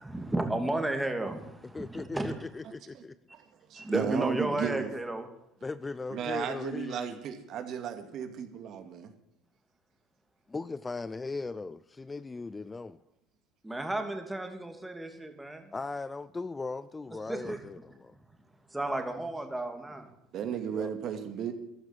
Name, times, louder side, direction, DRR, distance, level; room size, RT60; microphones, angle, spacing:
voice 1, 0.0-2.3 3.7-5.3 13.6-15.7 17.3-17.6 18.7-20.1, right 1 dB, 10° right, 2.8 m, -33 dB
voice 2, 1.7-3.1 5.6-7.2 10.5-13.0 15.7-18.1 20.7-20.9, left 3 dB, 20° left, 0.5 m, -38 dB
voice 3, 3.3-4.9 6.1-9.1 20.3-21.5, right 8 dB, 55° right, 2.3 m, -35 dB
14.5 x 11.5 x 7.5 m
supercardioid pair, 105°, 0 cm